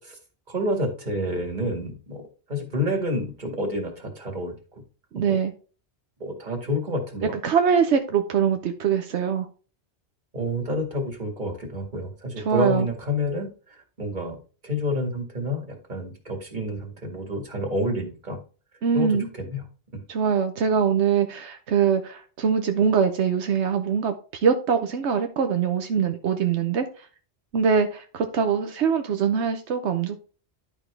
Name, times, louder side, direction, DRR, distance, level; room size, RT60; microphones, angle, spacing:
voice 1, 0.5-2.2 2.5-4.5 5.3-5.4 6.2-7.4 10.3-14.4 14.6-18.4 18.9-19.6 19.9-20.0, left 1 dB, 45° right, 2 dB, 2.2 m, -29 dB
voice 2, 5.1-5.5 7.4-9.5 12.5-12.9 18.8-19.3 20.1-26.9 27.5-30.2, right 6 dB, 85° right, 7 dB, 1.1 m, -23 dB
11.0 x 5.3 x 3.3 m, 0.36 s
omnidirectional pair, 1.1 m